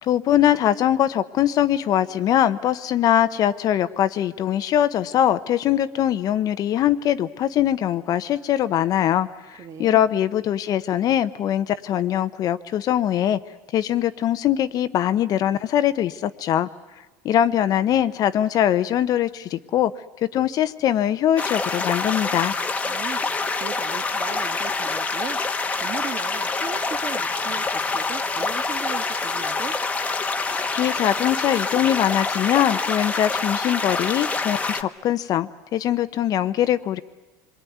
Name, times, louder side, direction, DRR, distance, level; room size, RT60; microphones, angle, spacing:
voice 1, 0.0-13.4 13.7-16.7 17.2-19.9 20.2-22.5 30.7-37.0, left 11 dB, 45° left, 12 dB, 0.9 m, -22 dB
voice 2, 9.6-10.0 22.8-29.8, right 7 dB, 35° right, 8 dB, 1.6 m, -37 dB
sound 1, 21.4-34.8, left 4 dB, 15° left, 1.2 m, -26 dB
27.0 x 22.5 x 9.4 m, 1.2 s
supercardioid pair, 115°, 9 cm